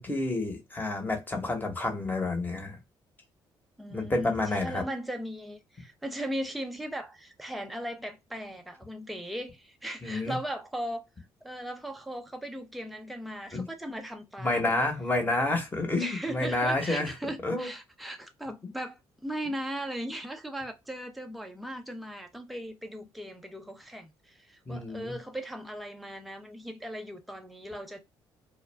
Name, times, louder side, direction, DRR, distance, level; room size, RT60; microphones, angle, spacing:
voice 1, 0.0-2.8 3.9-4.8 10.0-10.4 13.5-13.7 14.4-17.1 17.4-17.7 24.7-25.1, left 2 dB, 20° left, 1.0 m, -29 dB
voice 2, 3.8-14.7 16.0-28.0, right 1 dB, ahead, 0.5 m, -38 dB
2.2 x 2.1 x 3.2 m
supercardioid pair, 75°, 10 cm